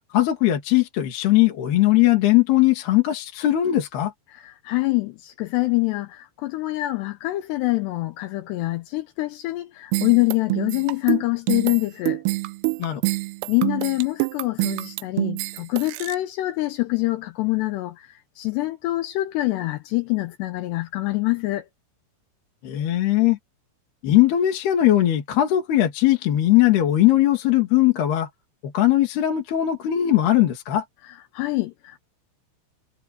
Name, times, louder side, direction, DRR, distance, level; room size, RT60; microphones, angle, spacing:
voice 1, 0.1-4.1 12.8-13.0 22.6-23.4 24.0-28.3 28.6-30.8, left 14 dB, 55° left, 4.2 m, -19 dB
voice 2, 4.3-12.2 13.5-21.7 31.3-32.0, left 20 dB, 80° left, 2.5 m, -25 dB
sound 1, 9.9-16.2, right 23 dB, 85° right, 3.3 m, -26 dB
omnidirectional pair, 5.8 m